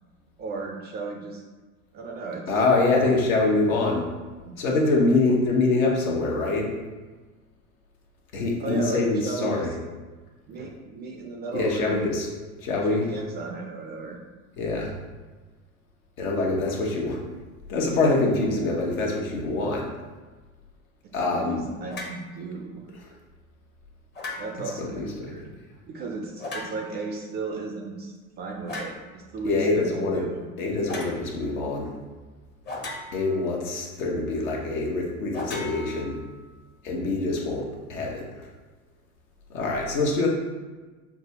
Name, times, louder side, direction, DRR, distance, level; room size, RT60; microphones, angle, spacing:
voice 1, 0.4-1.4 1.9-2.4 4.5-4.6 8.6-9.8 10.5-12.1 12.9-14.2 21.3-22.9 24.4-25.5 25.9-30.4, right 3 dB, 25° right, 1 dB, 0.4 m, -35 dB
voice 2, 2.5-4.0 4.6-6.7 8.3-9.7 11.5-12.3 12.6-13.1 14.6-14.9 16.2-17.2 17.7-19.9 21.1-21.7 24.8-25.3 29.4-30.3 30.6-31.9 33.1-36.2 36.8-38.4 39.5-40.3, left 3 dB, 70° left, -2 dB, 1.1 m, -24 dB
sound 1, 21.9-22.2 24.1-24.8 26.4-27.0 28.7-29.0 30.9-31.2 32.7-33.4 35.3-36.5, left 2 dB, 25° left, 0.7 m, -36 dB
5.9 x 2.3 x 2.8 m, 1.3 s
hypercardioid pair, 85°, 43 cm